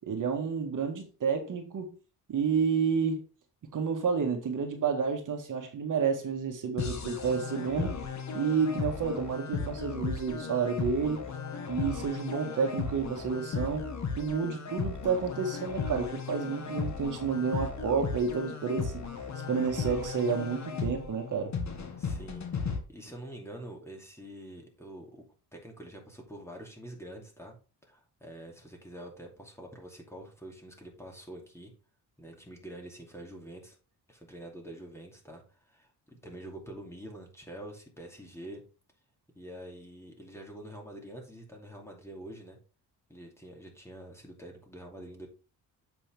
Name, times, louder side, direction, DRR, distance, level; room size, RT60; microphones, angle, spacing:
voice 1, 0.0-1.9 2.3-3.2 3.7-8.0 8.3-11.2 11.7-13.9 14.2-19.0 19.5-21.5, right 6 dB, 55° right, 1.7 m, -30 dB
sound 1, 6.8-22.8, left 5 dB, 45° left, 1.6 m, -36 dB
voice 2, 22.0-25.2 25.5-27.6 27.8-31.7 32.2-33.8 34.1-38.6 39.3-42.6 43.1-45.3, right 1 dB, 5° left, 2.5 m, -46 dB
7.9 x 6.0 x 3.5 m
cardioid pair, 110°, 38 cm